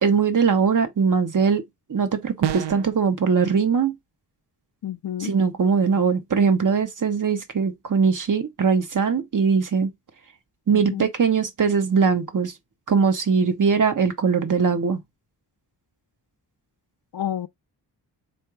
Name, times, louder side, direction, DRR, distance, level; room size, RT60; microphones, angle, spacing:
voice 1, 0.0-1.6 1.9-3.9 5.2-9.9 10.7-12.5 12.9-15.0, right 5 dB, 45° right, 1.0 m, -21 dB
sound 1, 2.4-3.0, right 10 dB, 75° right, 0.6 m, -27 dB
voice 2, 4.8-5.3 10.7-11.1 17.1-17.5, left 11 dB, 55° left, 0.6 m, -30 dB
3.8 x 2.6 x 4.6 m
wide cardioid pair, 85°, 42 cm